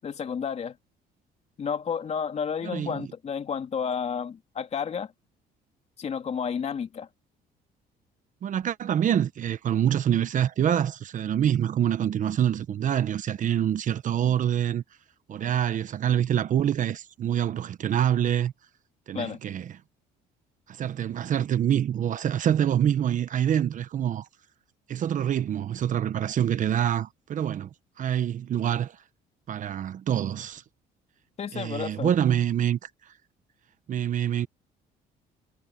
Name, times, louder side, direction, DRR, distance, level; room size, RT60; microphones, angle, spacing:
voice 1, 0.0-0.8 1.6-5.1 6.0-7.1 19.1-19.4 31.4-32.1, left 7 dB, 40° left, 3.0 m, -31 dB
voice 2, 2.6-3.0 8.4-14.8 15.3-18.5 19.1-19.6 20.7-24.3 24.9-27.7 28.0-29.0 29.5-30.6 31.5-32.8 33.9-34.5, right 10 dB, 50° right, 1.0 m, -26 dB
cardioid pair, 110°, 17 cm